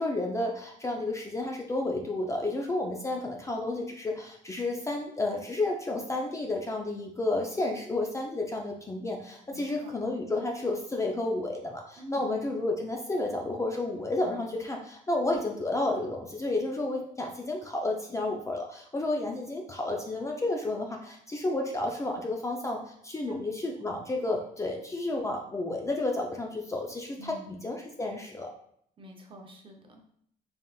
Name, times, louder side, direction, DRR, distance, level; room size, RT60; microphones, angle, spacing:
voice 1, 0.0-27.3 27.6-28.5, left 2 dB, 15° left, 1 dB, 0.5 m, -31 dB
voice 2, 9.5-9.9 12.0-12.3 23.3-23.4 23.8-23.9 27.2-27.5 29.0-30.0, equal, 30° right, 2 dB, 0.7 m, -45 dB
3.8 x 3.4 x 2.3 m, 0.67 s
cardioid pair, 110°, 17 cm